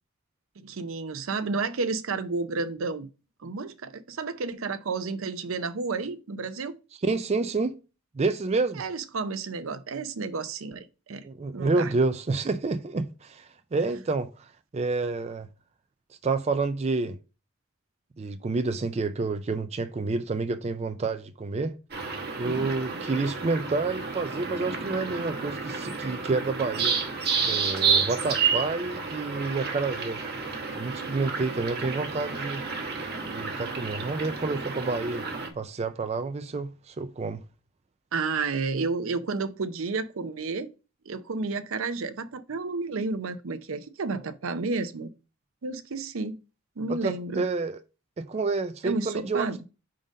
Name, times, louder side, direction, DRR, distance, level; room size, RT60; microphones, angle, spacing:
voice 1, 0.6-3.1 3.4-6.8 8.8-11.3 11.5-11.9 22.4-22.7 38.1-40.7 41.1-45.1 45.6-46.4 46.8-47.4 48.8-49.6, right 4 dB, 70° right, 0.6 m, -31 dB
voice 2, 7.0-7.8 8.1-8.8 11.2-14.5 14.7-15.5 16.2-17.2 18.2-21.7 22.4-26.9 27.4-30.2 30.8-32.6 33.3-35.3 35.5-37.4 46.9-47.8 48.2-49.6, right 3 dB, 30° right, 0.4 m, -29 dB
sound 1, 21.9-35.5, right 5 dB, 50° right, 1.1 m, -30 dB
5.2 x 3.8 x 5.1 m
head